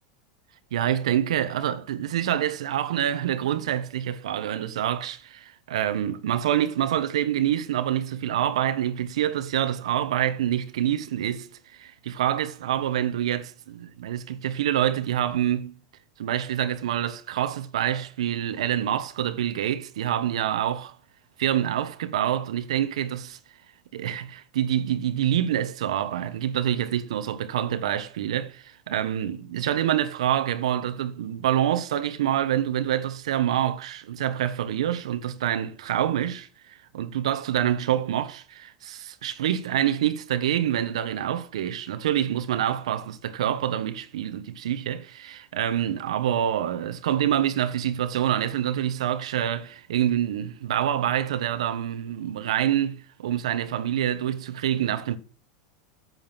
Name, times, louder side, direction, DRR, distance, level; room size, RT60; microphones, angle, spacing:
voice 1, 0.7-15.8 16.2-21.0 21.4-23.4 23.9-55.2, right 11 dB, 85° right, 1.3 m, -26 dB
9.3 x 7.9 x 7.5 m
supercardioid pair, 120°, 3 cm